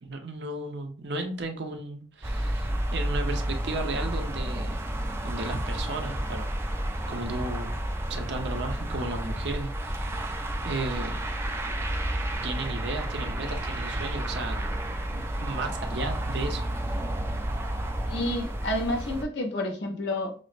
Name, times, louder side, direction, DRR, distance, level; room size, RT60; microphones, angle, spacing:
voice 1, 0.0-4.8 5.2-6.5 7.1-7.8 8.1-10.3 10.6-11.2 12.4-14.6 15.1-16.7, right 2 dB, 75° right, 4 dB, 0.7 m, -34 dB
sound 1, 2.2-19.2, right 1 dB, 15° right, 0.3 m, -31 dB
voice 2, 18.1-20.3, left 1 dB, 75° left, 3 dB, 0.6 m, -30 dB
6.1 x 2.1 x 2.5 m, 0.41 s
head